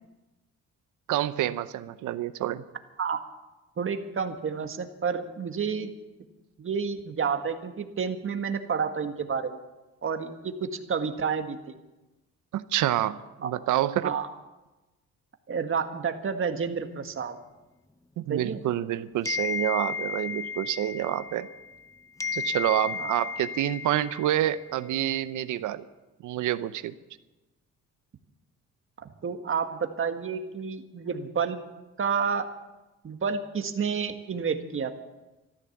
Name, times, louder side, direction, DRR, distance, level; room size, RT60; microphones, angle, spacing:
voice 1, 1.1-2.6 12.5-14.1 18.2-21.5 22.3-25.8 26.2-26.9, right 12 dB, 80° right, 13 dB, 0.8 m, -28 dB
voice 2, 3.8-5.9 6.6-9.6 10.0-11.6 13.4-13.5 14.0-14.3 15.5-17.4 18.3-18.6 23.0-23.1 29.2-31.6 32.0-32.5 33.0-35.0, right 6 dB, 45° right, 6 dB, 1.7 m, -30 dB
sound 1, 19.2-21.9 22.2-24.8, left 5 dB, 10° left, 0.6 m, -34 dB
14.0 x 13.0 x 7.2 m, 1.1 s
cardioid pair, 90°, 30 cm